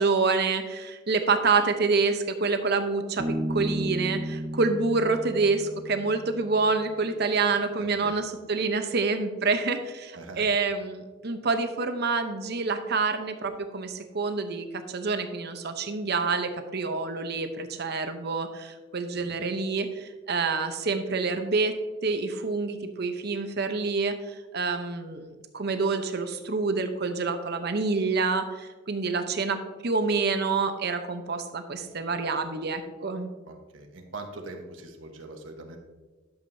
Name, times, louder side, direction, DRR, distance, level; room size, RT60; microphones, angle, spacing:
voice 1, 0.0-21.7 22.0-33.3, right 4 dB, 55° right, 7 dB, 0.8 m, -27 dB
Bass guitar, 3.2-6.7, equal, 35° right, 1.2 m, -33 dB
voice 2, 10.1-10.5 19.1-19.3 33.5-35.8, right 2 dB, 90° right, 3 dB, 1.2 m, -42 dB
11.5 x 7.3 x 2.7 m, 1.3 s
head